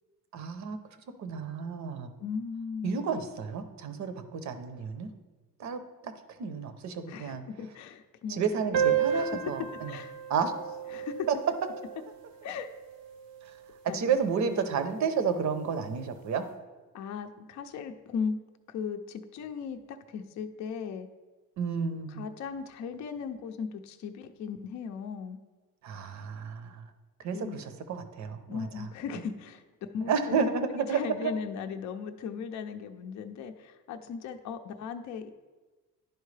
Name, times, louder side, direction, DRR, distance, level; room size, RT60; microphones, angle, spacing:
voice 1, 0.3-0.8 1.2-2.1 2.8-5.1 5.6-6.1 6.4-7.4 8.3-9.9 10.3-10.5 11.3-11.4 13.9-16.4 21.6-22.2 25.8-26.8 27.2-28.8 30.0-31.3, right 6 dB, 55° right, 9 dB, 0.8 m, -31 dB
voice 2, 2.2-3.0 7.1-10.2 10.9-11.3 12.4-12.7 13.9-14.7 16.9-18.4 18.7-21.1 22.1-25.4 27.3-27.6 28.5-29.6 29.9-30.4 30.8-35.3, left 6 dB, 55° left, 6 dB, 0.5 m, -37 dB
sound 1, 8.7-13.7, right 8 dB, 80° right, 0.9 m, -33 dB
10.5 x 4.5 x 3.3 m, 1.3 s
cardioid pair, 130°, 34 cm